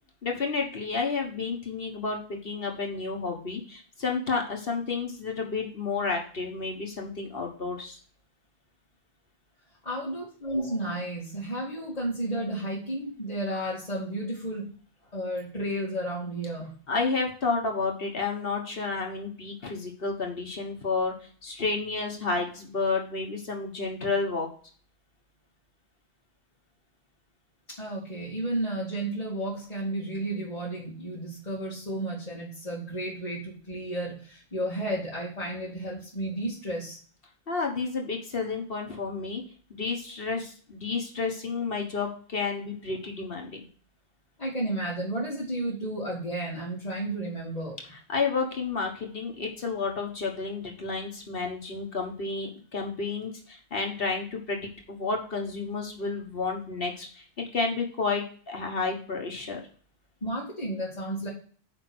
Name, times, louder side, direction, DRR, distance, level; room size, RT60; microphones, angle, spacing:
voice 1, 0.2-8.0 16.9-21.1 21.4-24.5 37.5-39.4 39.7-43.6 47.9-59.6, left 4 dB, 60° left, 1 dB, 1.5 m, -31 dB
voice 2, 9.8-14.7 15.1-16.7 27.8-37.0 44.4-47.8 60.2-61.3, right 1 dB, 35° left, -7 dB, 2.1 m, -32 dB
6.6 x 5.1 x 6.0 m, 0.43 s
omnidirectional pair, 1.1 m